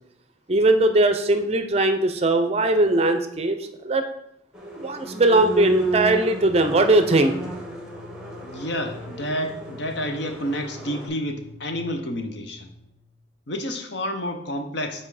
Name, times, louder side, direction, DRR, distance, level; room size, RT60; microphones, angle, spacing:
voice 1, 0.5-4.0 4.8-7.3, right 2 dB, 35° right, 8 dB, 0.5 m, -20 dB
sound 1, 4.5-11.1, right 3 dB, 5° right, 1.0 m, -33 dB
sound 2, 5.3-13.1, left 2 dB, 90° left, 1.5 m, -46 dB
voice 2, 8.4-12.7 13.5-15.1, equal, 65° left, 5 dB, 0.8 m, -29 dB
5.6 x 4.2 x 4.8 m, 0.76 s
head